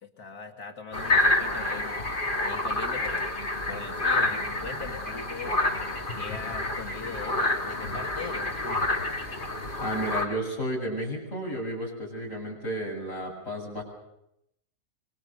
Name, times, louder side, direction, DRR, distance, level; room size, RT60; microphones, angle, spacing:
voice 1, 0.0-2.0 2.4-3.3 3.7-5.6 6.1-9.0, left 4 dB, 85° left, 4 dB, 2.6 m, -40 dB
sound 1, 0.9-10.2, left 2 dB, 35° left, 2.7 m, -28 dB
voice 2, 9.8-13.8, right 1 dB, 55° left, 0 dB, 7.9 m, -32 dB
26.5 x 24.0 x 6.8 m, 0.79 s
omnidirectional pair, 1.6 m